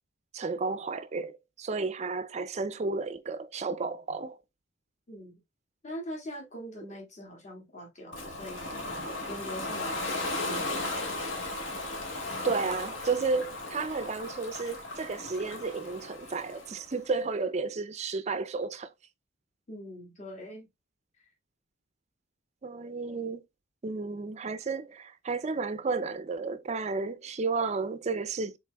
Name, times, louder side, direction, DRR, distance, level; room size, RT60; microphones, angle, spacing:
voice 1, 0.3-4.4 12.4-18.9 22.6-23.4 23.8-28.6, right 4 dB, 35° right, 0.4 m, -32 dB
voice 2, 5.1-5.4 5.8-8.6 9.3-11.3 19.7-20.7 21.2-21.3, equal, 35° left, 1.8 m, -43 dB
Ocean, 8.1-17.0, left 2 dB, 65° left, 1.6 m, -36 dB
5.9 x 3.7 x 2.3 m
head